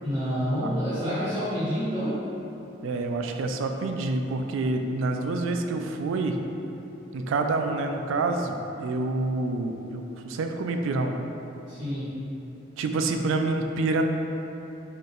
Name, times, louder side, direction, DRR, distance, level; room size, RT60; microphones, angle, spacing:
voice 1, 0.0-2.2 11.7-12.2, equal, 20° right, -16 dB, 0.9 m, -28 dB
voice 2, 2.8-6.4 7.1-11.1 12.8-14.0, right 3 dB, 80° right, 5 dB, 0.3 m, -27 dB
3.6 x 2.7 x 3.8 m, 3.0 s
head